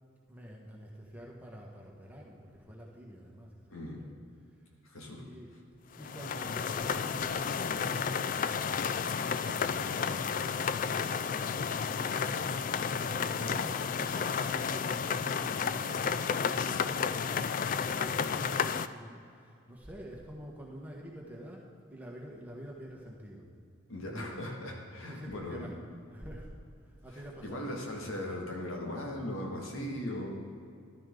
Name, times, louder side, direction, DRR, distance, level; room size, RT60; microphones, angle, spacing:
voice 1, 0.3-4.1 5.2-5.5 5.9-12.5 13.0-14.3 14.6-23.5 24.0-24.3 25.1-25.7 26.1-26.5 26.8-27.7, equal, 10° right, -3 dB, 1.5 m, -48 dB
voice 2, 3.7-4.0 4.8-5.2 13.4-13.6 23.9-25.7 27.1-30.3, left 1 dB, 80° left, 0 dB, 2.2 m, -39 dB
sound 1, 6.0-18.9, left 6 dB, 40° left, 0.3 m, -32 dB
14.0 x 12.5 x 3.9 m, 2.4 s
head